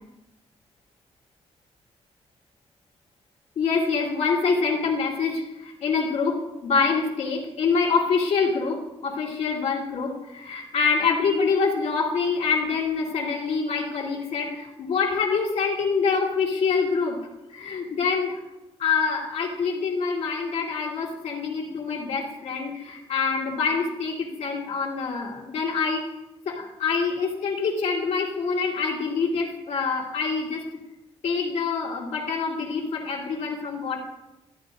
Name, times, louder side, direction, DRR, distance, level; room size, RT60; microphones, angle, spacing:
voice 1, 3.6-5.4 5.8-17.2 17.5-18.4 18.8-26.1 26.5-30.6 31.2-34.0, left 5 dB, 85° left, -2 dB, 2.4 m, -25 dB
13.5 x 9.4 x 2.6 m, 0.98 s
wide cardioid pair, 130°, 11 cm